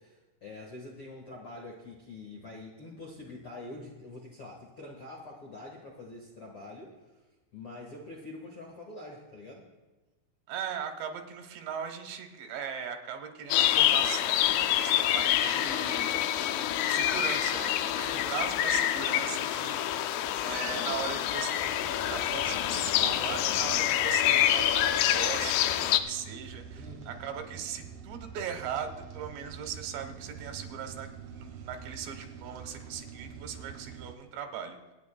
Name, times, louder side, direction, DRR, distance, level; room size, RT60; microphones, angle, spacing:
voice 1, 0.0-6.9 7.5-9.6 18.0-18.3 26.7-27.2, left 2 dB, 60° left, -2 dB, 1.4 m, -45 dB
voice 2, 10.5-34.8, right 8 dB, 85° right, 5 dB, 3.4 m, -39 dB
sound 1, 13.5-26.0, left 12 dB, 80° left, 2.5 m, -27 dB
sound 2, 14.9-34.1, right 7 dB, 60° right, 2.0 m, -47 dB
26.5 x 9.5 x 2.2 m, 1.2 s
omnidirectional pair, 4.9 m